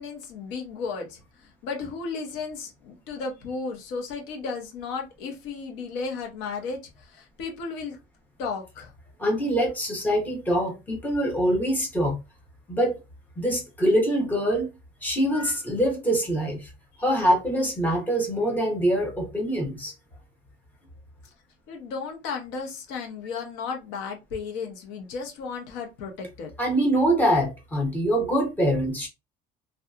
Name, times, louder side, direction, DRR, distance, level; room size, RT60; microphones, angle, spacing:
voice 1, 0.0-8.0 8.4-8.9 21.7-26.5, left 4 dB, 75° left, 0.9 m, -34 dB
voice 2, 9.2-12.2 12.7-13.0 13.4-14.7 15.0-16.7 17.0-19.9 26.6-29.1, right 1 dB, 10° left, 0.7 m, -24 dB
2.7 x 2.3 x 2.3 m
cardioid pair, 175°, 19 cm